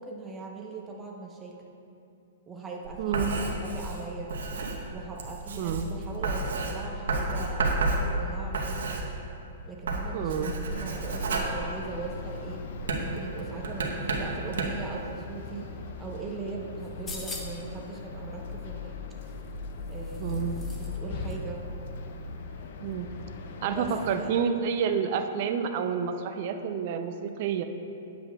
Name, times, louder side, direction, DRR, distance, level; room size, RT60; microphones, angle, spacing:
voice 1, 0.0-1.6 2.5-4.4 4.9-9.1 9.7-12.6 13.0-15.7 16.0-19.0 19.9-20.4 20.7-21.6 23.6-24.3, right 4 dB, 15° right, -1 dB, 0.9 m, -39 dB
Writing, 2.8-9.5 9.8-12.3 12.8-14.9, right 2 dB, 85° right, 1.0 m, -31 dB
voice 2, 3.0-3.4 5.6-5.9 10.1-10.5 20.2-20.5 22.8-23.1 23.6-27.6, right 7 dB, 50° right, 6 dB, 0.5 m, -29 dB
sound 1, 10.7-24.3, left 4 dB, 60° left, 0.5 m, -39 dB
sound 2, 16.8-17.7 19.2-21.0 21.3-21.4, left 3 dB, 15° left, 0.8 m, -42 dB
9.6 x 7.7 x 2.4 m, 2.7 s
hypercardioid pair, 145°, 0 cm